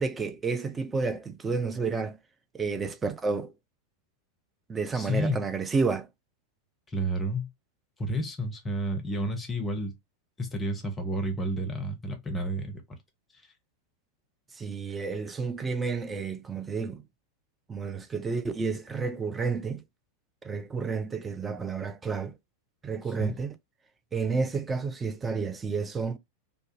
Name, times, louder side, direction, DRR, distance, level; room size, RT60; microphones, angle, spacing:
voice 1, 0.0-2.2 2.5-3.5 4.7-6.1 14.6-17.0 17.7-19.8 20.4-22.4 22.8-23.5 24.1-26.2, right 4 dB, 15° right, 0.4 m, -30 dB
voice 2, 4.9-5.4 6.9-7.5 8.0-9.9 10.4-12.8 23.2-23.3, equal, 15° left, 0.7 m, -30 dB
2.3 x 2.1 x 2.8 m
figure-of-eight pair, 90°, 0 cm